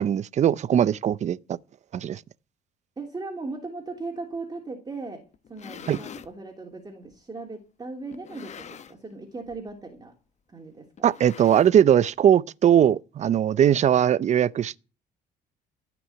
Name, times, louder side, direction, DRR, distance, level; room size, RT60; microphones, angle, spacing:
voice 1, 0.0-1.6 1.9-2.2 5.9-6.0 11.0-14.8, right 10 dB, 45° right, 0.6 m, -20 dB
voice 2, 3.0-5.2 5.5-10.1 10.5-11.1, right 3 dB, 20° right, 3.0 m, -38 dB
sound 1, 5.3-6.3 7.1-7.2 8.1-9.1 9.4-9.7 10.0-10.1 11.0-12.0, left 7 dB, 40° left, 1.2 m, -44 dB
15.0 x 6.1 x 9.2 m
cardioid pair, 110°, 17 cm